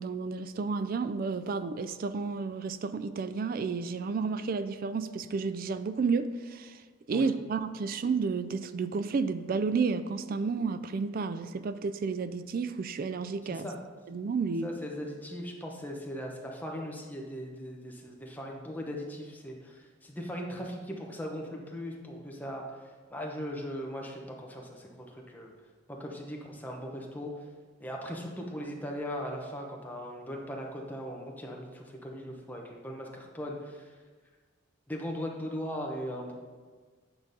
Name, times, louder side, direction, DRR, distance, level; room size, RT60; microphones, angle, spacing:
voice 1, 0.0-6.8 7.1-13.7 14.1-14.7, right 4 dB, 45° right, 12 dB, 0.3 m, -31 dB
voice 2, 14.6-22.8 23.1-25.5 26.0-27.4 27.8-33.9 34.9-36.3, equal, 10° left, 0 dB, 0.9 m, -39 dB
8.8 x 3.9 x 5.3 m, 1.5 s
head